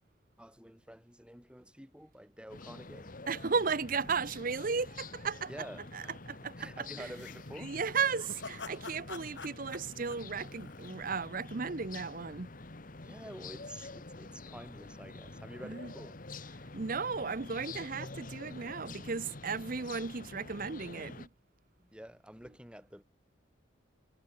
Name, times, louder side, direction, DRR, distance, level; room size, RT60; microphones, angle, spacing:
voice 1, 0.4-3.2 5.5-6.1 6.6-7.7 13.0-16.2 16.5-16.8 21.8-23.0, equal, 5° right, 3.5 m, -49 dB
sound 1, 2.5-21.3, left 3 dB, 45° left, 1.4 m, -47 dB
voice 2, 3.3-5.7 5.9-7.1 7.6-12.5 15.6-15.9 16.7-21.3, right 5 dB, 45° right, 0.8 m, -35 dB
sound 2, 7.1-11.3, left 4 dB, 60° left, 1.8 m, -47 dB
head